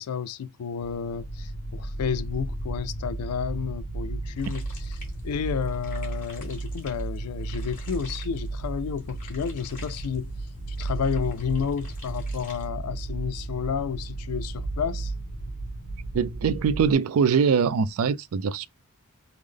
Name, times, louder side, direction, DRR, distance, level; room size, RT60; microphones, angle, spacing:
voice 1, 0.0-4.6 5.2-10.3 10.7-15.1, left 7 dB, 90° left, 0.4 m, -31 dB
sound 1, 0.8-16.9, right 2 dB, 55° left, 1.1 m, -34 dB
sound 2, 4.4-12.7, left 3 dB, 35° left, 1.7 m, -49 dB
voice 2, 16.1-18.7, right 6 dB, 70° right, 0.4 m, -23 dB
3.6 x 2.0 x 3.3 m
head